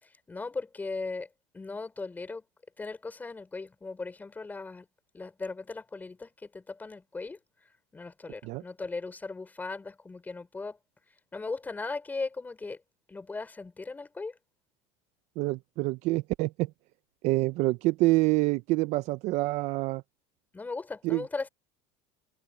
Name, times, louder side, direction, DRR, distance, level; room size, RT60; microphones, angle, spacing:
voice 1, 0.0-1.3 1.5-2.4 2.8-4.9 5.1-7.4 7.9-10.8 11.3-12.8 13.1-14.4 20.5-21.5, left 3 dB, 10° left, 4.6 m, -38 dB
voice 2, 15.4-16.7 17.2-20.0 21.0-21.2, right 20 dB, 50° right, 0.5 m, -26 dB
cardioid pair, 160°, 15 cm